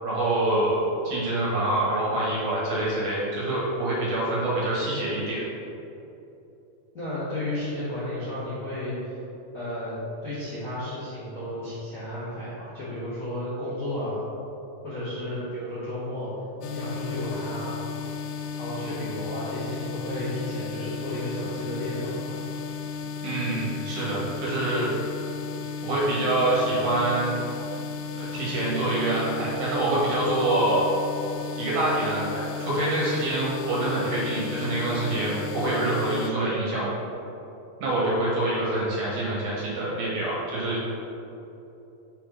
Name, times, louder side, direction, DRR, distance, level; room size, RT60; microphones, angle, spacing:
voice 1, 0.0-5.4 23.2-24.9 25.8-27.4 28.2-30.9 31.6-36.9 37.8-40.8, right 1 dB, 65° right, -7 dB, 2.7 m, -26 dB
voice 2, 6.9-9.1 9.5-9.9 10.2-14.2 14.8-16.3 16.7-17.8 18.5-22.3, left 1 dB, 65° left, -10 dB, 0.8 m, -33 dB
sound 1, 16.6-36.3, left 5 dB, 80° left, 2.1 m, -35 dB
5.6 x 4.4 x 4.9 m, 2.9 s
omnidirectional pair, 4.1 m